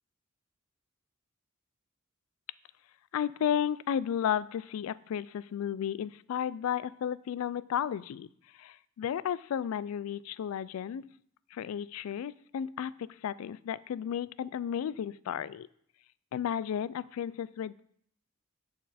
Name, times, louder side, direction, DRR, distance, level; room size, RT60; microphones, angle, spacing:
voice 1, 3.1-8.3 8.6-11.1 11.5-15.7 16.3-17.8, left 9 dB, 75° left, 17 dB, 0.3 m, -33 dB
9.6 x 4.2 x 4.1 m, 0.65 s
head